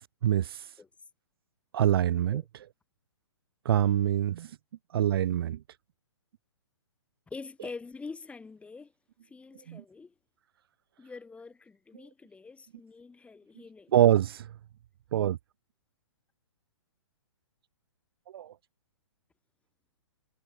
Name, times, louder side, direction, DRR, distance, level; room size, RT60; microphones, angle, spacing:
voice 1, 0.2-0.7 1.7-2.4 3.6-4.5 4.9-5.6 9.7-9.8 13.9-14.5 15.1-15.4 18.3-18.5, right 11 dB, 50° right, 0.6 m, -25 dB
voice 2, 7.3-8.9 9.2-10.1 11.0-14.0, left 4 dB, 10° left, 2.9 m, -45 dB
figure-of-eight pair, 125°, 15 cm